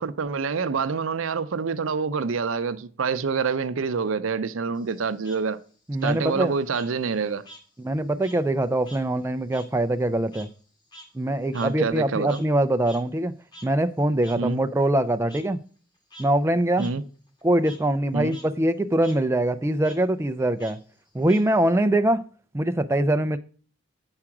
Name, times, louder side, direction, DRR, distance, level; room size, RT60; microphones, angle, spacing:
voice 1, 0.0-5.6 6.0-7.4 11.5-12.4 14.4-14.6 16.8-17.0 18.1-18.4, right 5 dB, 85° right, 0.6 m, -27 dB
Frog, 4.7-7.7 8.0-12.6 12.8-13.0 13.5-13.7 14.2-14.4 15.3-15.4 15.9-16.3 16.8-16.9 17.3-17.8 18.2-18.4 18.7-19.2 19.8-20.0 20.6-21.8, right 1 dB, 20° left, 1.5 m, -47 dB
voice 2, 5.9-6.5 7.8-10.5 11.2-13.3 13.6-15.6 16.2-16.9 17.4-20.8 21.1-22.2 22.5-23.4, right 1 dB, 15° right, 0.3 m, -23 dB
8.7 x 4.8 x 5.9 m
head